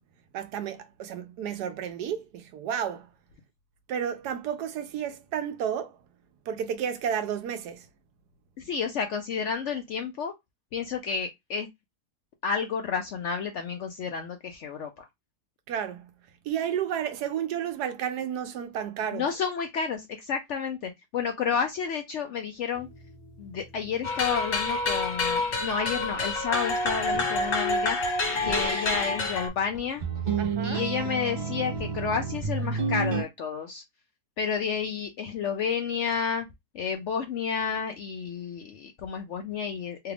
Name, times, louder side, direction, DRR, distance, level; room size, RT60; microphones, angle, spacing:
voice 1, 0.3-3.1 3.9-6.0 6.5-7.9 15.7-16.1 16.4-19.2 30.4-30.9, right 9 dB, 85° right, 1.2 m, -32 dB
voice 2, 8.6-10.3 10.7-11.7 12.4-15.1 19.1-22.9 23.4-28.0 28.4-30.0 30.6-33.8 34.4-36.5 36.7-40.1, left 6 dB, 70° left, 0.7 m, -31 dB
sound 1, 22.8-26.4 26.7-27.6 28.3-33.2, right 5 dB, 50° right, 0.6 m, -34 dB
sound 2, 24.0-29.5, left 3 dB, 55° left, 1.6 m, -27 dB
3.3 x 2.3 x 3.3 m
omnidirectional pair, 1.7 m